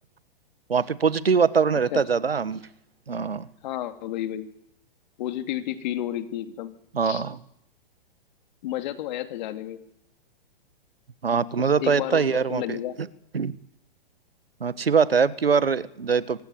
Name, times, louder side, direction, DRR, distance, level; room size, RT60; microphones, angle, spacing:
voice 1, 0.7-2.6 3.1-3.5 6.9-7.4 11.2-12.8 13.3-13.6 14.6-16.4, right 5 dB, 90° right, 17 dB, 1.4 m, -23 dB
voice 2, 3.6-4.5 5.2-6.7 7.0-7.2 8.6-9.8 11.6-13.0, left 12 dB, 50° left, 9 dB, 2.9 m, -31 dB
25.0 x 16.0 x 9.3 m, 0.79 s
hypercardioid pair, 120°, 29 cm